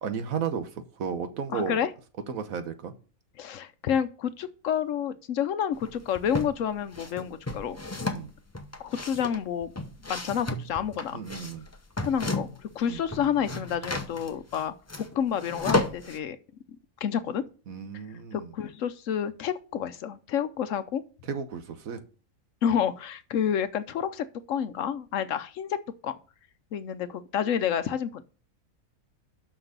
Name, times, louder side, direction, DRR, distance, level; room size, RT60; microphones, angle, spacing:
voice 1, 0.0-1.8 2.3-2.9 8.1-8.3 11.1-11.7 12.9-13.0 17.7-18.5 21.3-22.0, right 6 dB, 70° right, 1.4 m, -33 dB
voice 2, 1.5-1.9 3.4-7.8 8.8-9.7 10.1-11.2 12.1-16.4 17.0-17.4 17.9-18.0 18.3-21.0 22.6-25.8 26.0-26.2 26.7-28.2, left 8 dB, 65° left, 1.0 m, -29 dB
sound 1, 5.8-6.5 6.9-12.7 13.0-16.2, left 2 dB, 20° left, 0.4 m, -33 dB
6.2 x 5.9 x 6.6 m
omnidirectional pair, 1.5 m